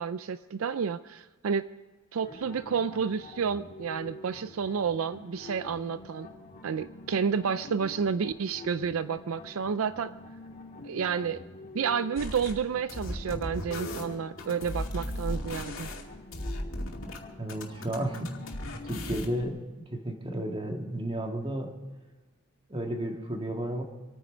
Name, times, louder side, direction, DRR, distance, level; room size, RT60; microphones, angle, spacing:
voice 1, 0.0-1.7 2.1-6.3 6.6-10.1 10.8-11.4 11.7-15.9, right 6 dB, 75° right, 14 dB, 0.4 m, -30 dB
sound 1, 2.2-19.0, left 2 dB, 35° left, 1.8 m, -47 dB
sound 2, 12.2-12.5 12.9-17.2 17.5-19.4, left 1 dB, 65° left, 2.5 m, -36 dB
voice 2, 17.4-18.3 18.8-19.6 19.9-21.7 22.7-23.8, right 1 dB, 25° right, 3 dB, 1.9 m, -32 dB
27.0 x 9.5 x 5.1 m, 1.2 s
head